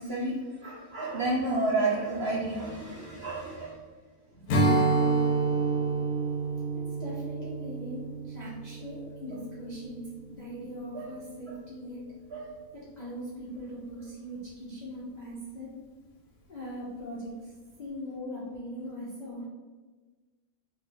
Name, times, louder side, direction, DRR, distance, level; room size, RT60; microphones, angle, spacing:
voice 1, 0.0-3.8 8.4-8.5 10.9-11.1 12.3-12.6, right 2 dB, 70° right, -4 dB, 0.6 m, -31 dB
voice 2, 4.4-4.8 7.0-10.0 10.3-12.0 12.7-15.7 16.5-17.5 17.8-19.5, equal, 55° left, -7 dB, 0.4 m, -40 dB
Strum, 4.5-9.9, right 3 dB, 75° left, 1.0 m, -28 dB
3.0 x 2.5 x 3.3 m, 1.3 s
omnidirectional pair, 1.5 m